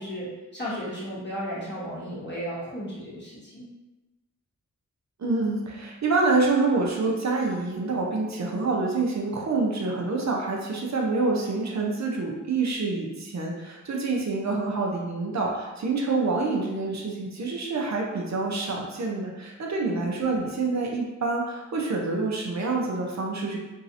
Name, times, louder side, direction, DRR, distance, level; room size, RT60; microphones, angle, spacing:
voice 1, 0.0-3.7 19.8-20.0, equal, 35° left, -9 dB, 1.4 m, -34 dB
voice 2, 5.2-23.6, right 3 dB, 60° right, -1 dB, 0.6 m, -27 dB
3.1 x 2.6 x 2.7 m, 1.1 s
wide cardioid pair, 75°, 31 cm